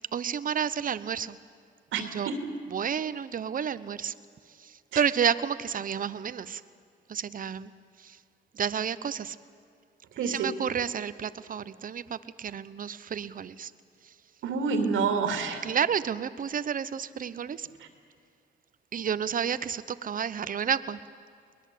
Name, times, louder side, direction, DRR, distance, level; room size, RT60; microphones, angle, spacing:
voice 1, 0.1-1.4 2.0-2.3 2.7-4.1 4.9-6.6 7.1-7.7 8.5-9.4 10.2-13.7 15.6-17.7 18.9-21.0, right 8 dB, 45° right, 15 dB, 0.9 m, -30 dB
voice 2, 1.9-2.5 4.9-5.0 10.2-10.6 14.4-15.6 17.8-17.9, right 5 dB, 80° right, 6 dB, 2.7 m, -28 dB
22.0 x 20.0 x 8.4 m, 2.3 s
cardioid pair, 90°, 20 cm